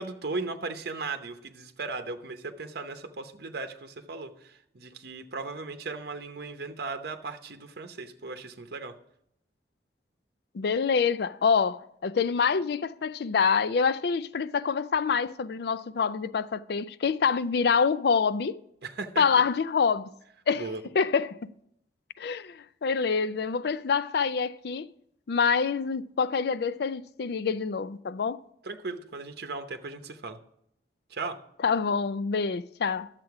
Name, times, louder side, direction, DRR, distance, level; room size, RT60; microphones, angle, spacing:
voice 1, 0.0-8.9 18.8-19.2 20.6-20.8 28.6-30.4 31.1-31.4, right 3 dB, 60° right, 0.8 m, -37 dB
voice 2, 10.5-18.6 19.2-20.1 20.5-20.7 20.9-21.5 22.2-24.9 25.3-28.4 31.6-33.1, left 5 dB, 65° left, 0.4 m, -26 dB
11.0 x 7.5 x 4.7 m
head